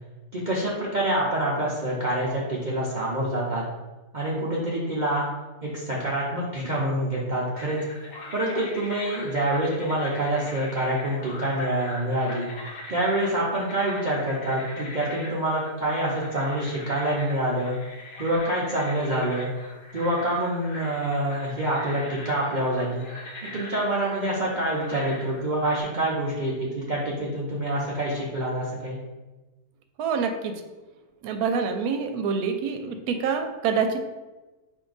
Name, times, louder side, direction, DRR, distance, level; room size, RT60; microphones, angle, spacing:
voice 1, 0.3-3.6 4.1-5.3 5.6-7.8 8.3-12.5 12.9-17.8 18.2-19.5 19.9-23.0 23.5-29.0, right 1 dB, 90° right, -5 dB, 0.4 m, -26 dB
sound 1, 7.5-25.8, left 2 dB, 60° left, 1.1 m, -41 dB
voice 2, 30.0-30.5 31.2-34.1, right 5 dB, 75° right, 5 dB, 1.0 m, -26 dB
4.5 x 2.6 x 3.9 m, 1.2 s
omnidirectional pair, 1.7 m